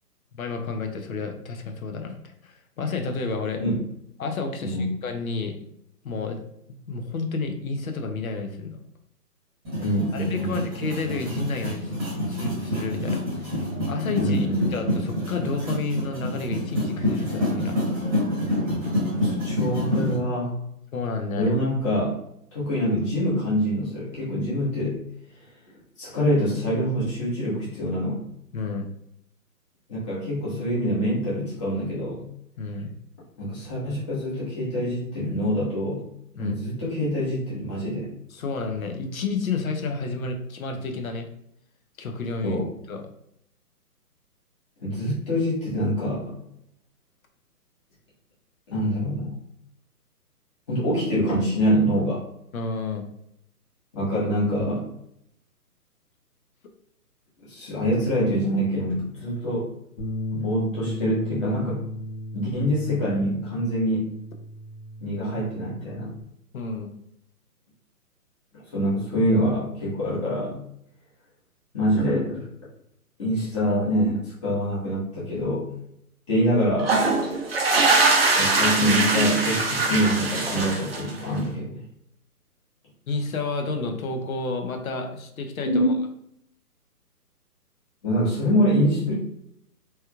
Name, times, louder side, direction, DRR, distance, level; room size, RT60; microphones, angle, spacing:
voice 1, 0.3-3.6 4.2-5.7 6.0-6.4 6.9-8.8 10.1-11.9 12.3-17.8 20.9-21.5 28.5-28.9 32.6-32.9 36.4-36.6 38.3-41.3 42.0-42.6 42.9-43.0 52.5-53.0 66.5-66.9 83.1-85.9, left 4 dB, 60° left, 4 dB, 0.8 m, -30 dB
sound 1, 9.6-20.1, left 1 dB, 15° right, 1.1 m, -27 dB
voice 2, 9.8-10.6 14.2-14.7 19.2-20.5 21.3-22.2 22.5-25.0 26.0-28.2 29.9-32.2 33.4-36.0 36.3-38.1 42.4-42.7 44.8-46.3 48.7-49.3 50.7-52.2 53.9-54.8 57.5-59.6 60.3-61.8 62.3-64.1 65.0-66.1 68.7-70.5 71.7-72.4 73.2-75.7 76.3-76.9 78.4-81.8 85.6-85.9 88.0-89.1, equal, 20° left, -8 dB, 1.1 m, -25 dB
Bass guitar, 60.0-66.2, left 1 dB, 40° left, 1.1 m, -35 dB
sound 2, 76.8-81.3, right 3 dB, 40° right, 0.5 m, -22 dB
3.3 x 3.0 x 2.3 m, 0.75 s
hypercardioid pair, 155°, 47 cm